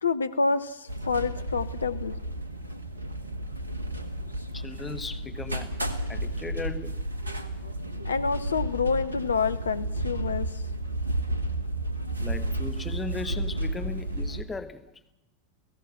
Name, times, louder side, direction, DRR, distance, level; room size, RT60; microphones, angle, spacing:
voice 1, 0.0-2.1 8.0-10.6, left 4 dB, 80° left, 0.8 m, -28 dB
sound 1, 0.9-14.4, right 1 dB, 85° right, 1.7 m, -32 dB
voice 2, 4.5-5.7 6.1-7.0 12.2-14.9, left 4 dB, 15° left, 1.6 m, -37 dB
30.0 x 16.5 x 6.0 m
figure-of-eight pair, 90°, 0 cm